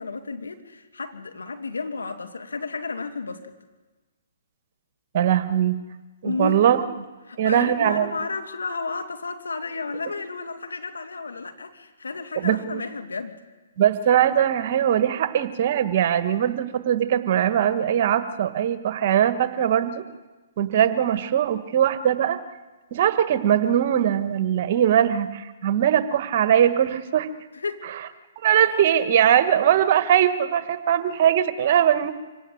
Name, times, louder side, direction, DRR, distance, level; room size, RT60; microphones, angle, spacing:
voice 1, 0.0-3.5 6.2-6.8 7.3-13.4 27.5-27.8, left 4 dB, 85° left, 6 dB, 2.4 m, -32 dB
voice 2, 5.1-5.8 6.2-6.8 7.4-8.1 12.4-12.8 13.8-20.0 20.6-22.4 22.9-27.3 28.4-32.1, right 10 dB, 50° right, 11 dB, 1.6 m, -21 dB
25.5 x 18.0 x 7.9 m, 1.2 s
hypercardioid pair, 130°, 0 cm